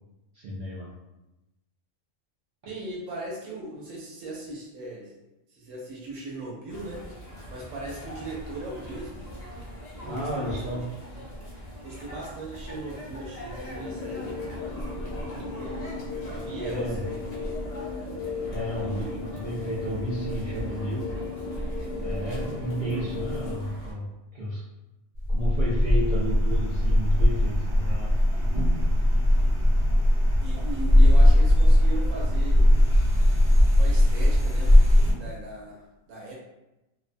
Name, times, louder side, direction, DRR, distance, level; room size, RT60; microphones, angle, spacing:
voice 1, 0.3-0.9 10.1-11.0 16.6-17.0 18.5-21.1 22.0-24.6 25.3-28.2, equal, 65° right, -6 dB, 0.5 m, -32 dB
voice 2, 2.6-5.2 5.5-9.3 9.9-10.8 11.1-11.3 11.8-14.4 15.1-17.6 18.7-19.1 29.4-29.5 30.4-32.7 33.8-34.8 35.1-36.3, right 2 dB, 90° right, -3 dB, 1.0 m, -39 dB
sound 1, 6.7-23.9, equal, 45° left, 0.6 m, -39 dB
sound 2, 13.7-23.6, left 4 dB, 75° left, 0.9 m, -36 dB
sound 3, 25.2-35.1, left 1 dB, 40° right, 1.2 m, -19 dB
2.5 x 2.1 x 2.5 m, 0.96 s
omnidirectional pair, 1.3 m